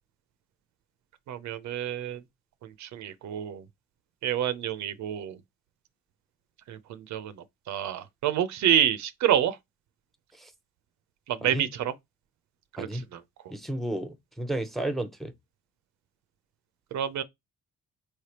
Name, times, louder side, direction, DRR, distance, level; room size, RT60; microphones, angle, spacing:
voice 1, 1.3-2.2 2.6-3.6 4.2-5.4 6.7-7.4 7.7-9.6 11.3-11.9 12.8-13.2 16.9-17.2, right 10 dB, 70° right, 0.6 m, -28 dB
voice 2, 13.5-15.3, right 1 dB, ahead, 0.6 m, -32 dB
4.3 x 3.3 x 2.9 m
cardioid pair, 90°, 30 cm